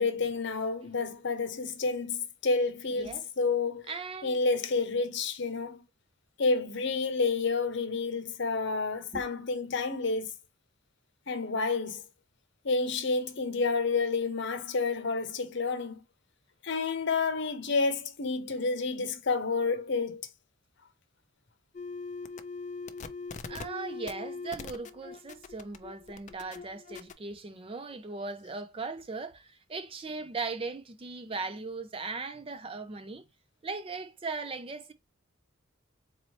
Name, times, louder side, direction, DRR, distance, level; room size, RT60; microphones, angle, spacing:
voice 1, 0.0-3.9 4.2-5.8 6.4-10.3 11.3-12.0 12.6-16.0 16.6-20.2, left 4 dB, 60° left, 0.8 m, -29 dB
voice 2, 2.9-3.2 3.9-4.4 9.1-9.2 23.5-33.2 33.6-34.9, right 4 dB, 25° right, 0.4 m, -38 dB
sound 1, 21.7-27.1, left 4 dB, 35° left, 0.4 m, -41 dB
4.0 x 2.8 x 3.1 m
head